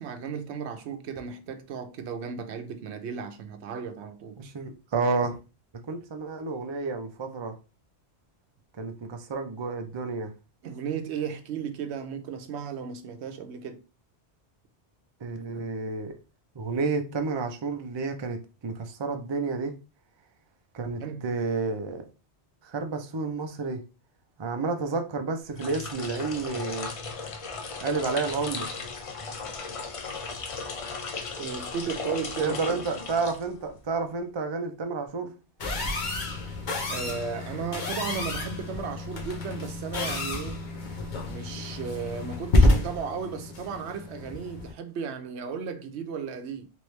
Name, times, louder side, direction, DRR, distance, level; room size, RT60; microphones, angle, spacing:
voice 1, 0.0-4.4 10.6-13.8 21.0-21.3 31.4-32.8 36.9-40.6 41.2-46.7, right 6 dB, 75° right, 0.9 m, -35 dB
voice 2, 4.4-5.4 5.9-7.5 8.8-10.3 15.2-16.1 16.6-19.7 20.7-22.0 22.6-23.8 24.4-26.9 27.8-28.7 32.4-35.3, right 4 dB, 40° right, 0.4 m, -30 dB
sound 1, 25.4-33.9, left 4 dB, 60° left, 0.3 m, -36 dB
sound 2, 35.6-44.7, left 2 dB, 45° left, 0.9 m, -28 dB
3.4 x 3.1 x 3.1 m
omnidirectional pair, 1.1 m